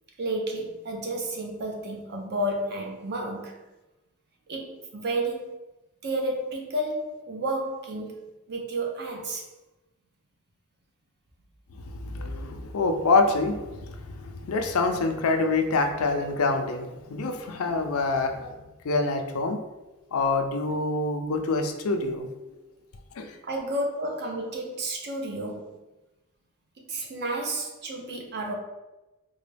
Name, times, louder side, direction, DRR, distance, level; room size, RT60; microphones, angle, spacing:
voice 1, 0.2-3.6 4.5-5.5 6.0-9.4 23.4-25.8 26.9-28.5, right 1 dB, 50° right, 0 dB, 0.7 m, -31 dB
voice 2, 11.7-18.6 18.8-19.6 20.1-22.3 23.2-23.3, left 3 dB, 75° left, 5 dB, 0.4 m, -26 dB
3.9 x 2.2 x 3.3 m, 1.1 s
head